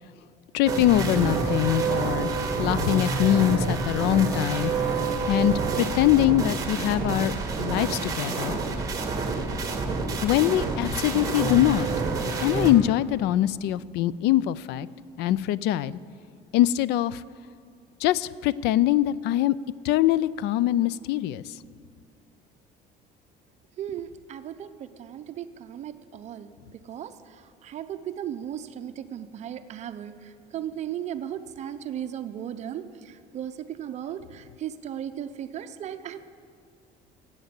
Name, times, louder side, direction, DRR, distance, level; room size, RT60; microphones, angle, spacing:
voice 1, 0.5-2.3 2.6-4.7 5.3-8.6 10.2-11.9 12.4-14.9 15.2-16.0 16.5-17.2 18.0-19.6 19.8-21.6, left 13 dB, 75° left, 19 dB, 0.4 m, -23 dB
sound 1, 0.7-12.7, right 4 dB, 20° right, 1.5 m, -28 dB
voice 2, 23.8-36.2, right 10 dB, 40° right, 9 dB, 0.6 m, -36 dB
14.5 x 8.7 x 8.1 m, 2.2 s
cardioid pair, 160°, 17 cm